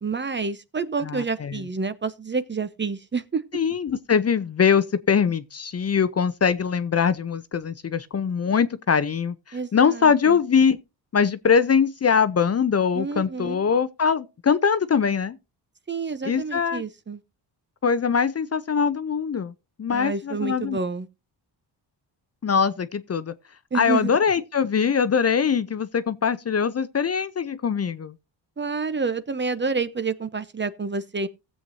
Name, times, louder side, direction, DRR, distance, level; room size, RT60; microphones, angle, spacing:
voice 1, 0.0-3.4 9.5-10.4 12.9-13.6 15.9-17.2 19.9-21.1 23.7-24.1 28.6-31.3, right 4 dB, 25° right, 0.8 m, -28 dB
voice 2, 1.1-1.5 3.5-10.8 11.1-15.4 16.2-16.8 17.8-19.5 19.8-20.8 22.4-23.3 23.7-28.1, left 6 dB, 35° left, 0.7 m, -22 dB
16.5 x 7.8 x 2.7 m
cardioid pair, 95°, 44 cm